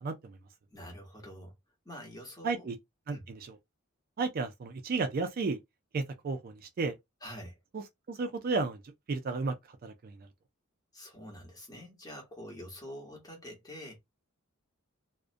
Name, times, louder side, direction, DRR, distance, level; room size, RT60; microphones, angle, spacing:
voice 1, 0.7-1.5 1.8-2.7 3.1-3.3 7.2-7.6 10.9-14.0, equal, 20° left, 1.1 m, -46 dB
voice 2, 2.4-2.8 3.1-3.4 4.2-5.6 5.9-7.0 7.7-8.8 9.1-9.5 9.8-10.2, right 4 dB, 45° right, 0.4 m, -33 dB
2.4 x 2.1 x 2.5 m
head